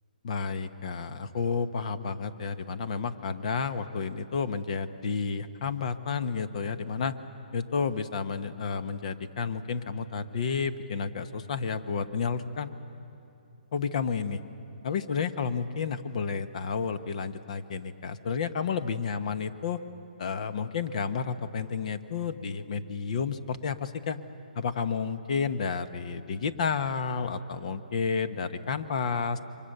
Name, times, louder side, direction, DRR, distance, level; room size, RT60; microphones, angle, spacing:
voice 1, 0.2-7.2 7.5-12.7 13.7-14.4 14.8-19.8 20.2-24.2 24.5-29.4, left 5 dB, 50° left, 11 dB, 1.2 m, -31 dB
28.5 x 24.5 x 6.8 m, 2.8 s
hypercardioid pair, 150°, 5 cm